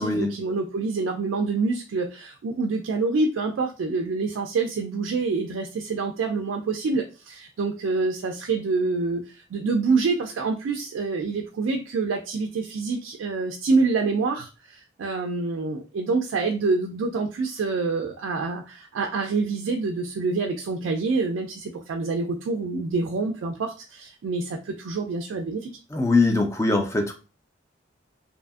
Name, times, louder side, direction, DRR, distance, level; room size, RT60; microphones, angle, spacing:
voice 1, 0.0-25.7, right 3 dB, 70° right, 3 dB, 0.3 m, -26 dB
voice 2, 25.9-27.1, left 3 dB, 15° left, 4 dB, 0.3 m, -22 dB
2.7 x 2.4 x 2.3 m, 0.32 s
head